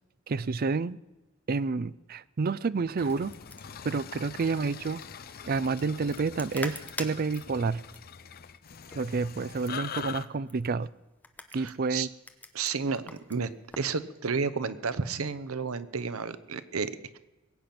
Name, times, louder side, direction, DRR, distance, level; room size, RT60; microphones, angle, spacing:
voice 1, 0.3-1.0 1.5-3.3 3.8-5.0 5.4-7.8 8.9-10.9 11.5-12.1, right 4 dB, 45° right, 18 dB, 0.4 m, -29 dB
sound 1, 2.8-14.0, left 2 dB, 10° left, 0.9 m, -46 dB
sound 2, 3.0-10.2, left 7 dB, 45° left, 0.6 m, -43 dB
voice 2, 11.5-12.1 12.5-13.5 13.8-17.2, right 5 dB, 90° right, 14 dB, 0.8 m, -32 dB
21.5 x 8.7 x 6.0 m, 1.1 s
head